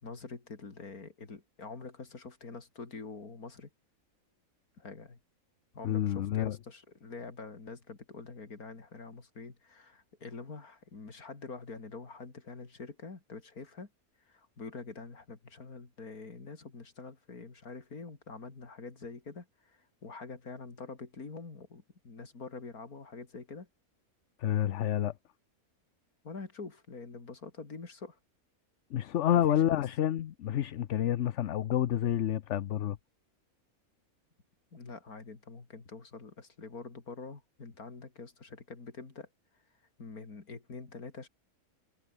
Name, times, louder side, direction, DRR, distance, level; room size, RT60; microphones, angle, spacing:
voice 1, 0.0-3.7 4.8-5.2 5.7-13.9 14.3-23.7 26.2-28.2 29.3-29.8 34.7-39.3 40.0-41.3, left 4 dB, 80° left, 3.6 m, -45 dB
voice 2, 5.8-6.6 24.4-25.1 28.9-33.0, left 11 dB, 60° left, 1.0 m, -29 dB
omnidirectional pair, 1.5 m